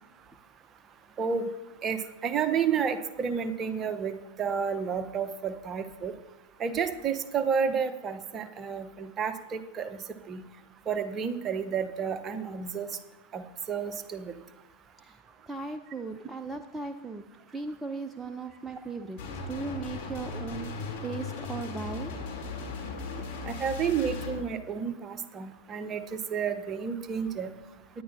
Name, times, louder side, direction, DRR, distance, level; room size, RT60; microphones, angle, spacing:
voice 1, 1.2-1.5 1.8-6.1 6.6-10.4 10.9-12.9 13.3-14.3 23.4-26.0 26.3-27.5, right 6 dB, 25° right, 10 dB, 0.9 m, -31 dB
voice 2, 15.5-19.2 19.5-20.7 21.0-22.1, right 4 dB, 10° right, 7 dB, 0.6 m, -37 dB
sound 1, 19.2-24.4, left 3 dB, 45° left, 3.2 m, -37 dB
18.0 x 10.5 x 2.7 m, 1.0 s
figure-of-eight pair, 90°, 0 cm